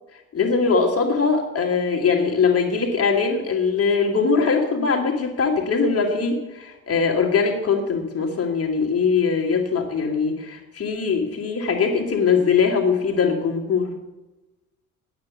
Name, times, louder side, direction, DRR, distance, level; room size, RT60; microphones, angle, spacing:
voice 1, 0.3-13.9, left 5 dB, 35° left, 2 dB, 2.8 m, -21 dB
9.5 x 7.8 x 8.4 m, 1.0 s
figure-of-eight pair, 55°, 41 cm